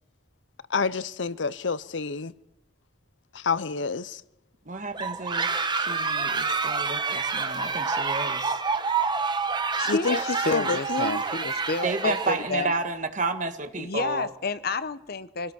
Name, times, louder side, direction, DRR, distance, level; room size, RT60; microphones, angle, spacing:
voice 1, 0.7-2.3 3.3-4.2 9.8-11.2, left 4 dB, 80° left, 0.8 m, -28 dB
voice 2, 4.7-5.5 5.8-8.6 11.8-14.3, right 3 dB, 45° right, 1.8 m, -31 dB
sound 1, 4.9-12.8, right 4 dB, 25° right, 1.2 m, -28 dB
voice 3, 9.8-12.7 13.8-15.5, left 3 dB, 55° left, 1.0 m, -30 dB
25.0 x 17.0 x 6.3 m
head